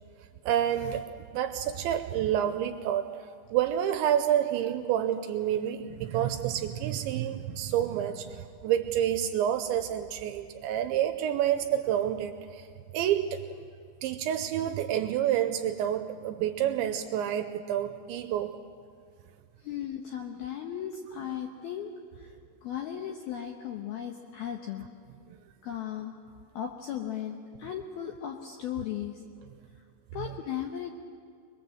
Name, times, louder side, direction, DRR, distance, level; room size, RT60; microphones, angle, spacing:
voice 1, 0.5-1.0 1.3-3.1 3.5-12.7 12.9-13.4 14.0-18.5 30.2-30.3, right 10 dB, 80° right, 8 dB, 2.8 m, -28 dB
voice 2, 19.6-22.3 22.6-24.9 25.6-26.1 26.5-29.2 30.1-30.9, left 9 dB, 75° left, 2 dB, 2.3 m, -36 dB
23.5 x 21.0 x 7.8 m, 2.2 s
omnidirectional pair, 5.7 m